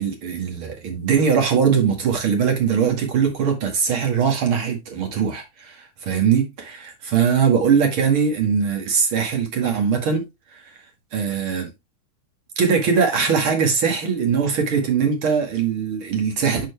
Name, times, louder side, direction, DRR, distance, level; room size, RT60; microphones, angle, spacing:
voice 1, 0.0-10.2 10.5-10.6 11.1-11.7 12.6-16.7, right 6 dB, 40° right, 2.3 m, -21 dB
9.2 x 4.7 x 3.4 m
omnidirectional pair, 4.3 m